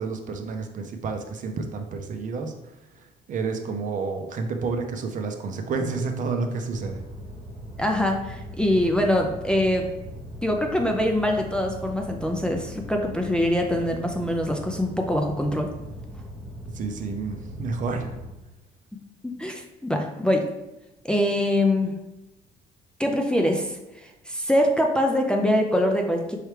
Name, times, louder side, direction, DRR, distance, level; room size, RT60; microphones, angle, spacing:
voice 1, 0.0-2.5 2.9-7.0 16.7-18.2, right 4 dB, 50° right, 5 dB, 0.6 m, -30 dB
sound 1, 6.7-18.3, equal, 20° right, 1.2 m, -39 dB
voice 2, 7.8-9.9 10.4-15.7 19.2-20.5 21.0-21.9 23.0-26.4, left 1 dB, 5° left, 1 dB, 0.4 m, -24 dB
4.7 x 3.2 x 3.2 m, 0.97 s
cardioid pair, 110°, 17 cm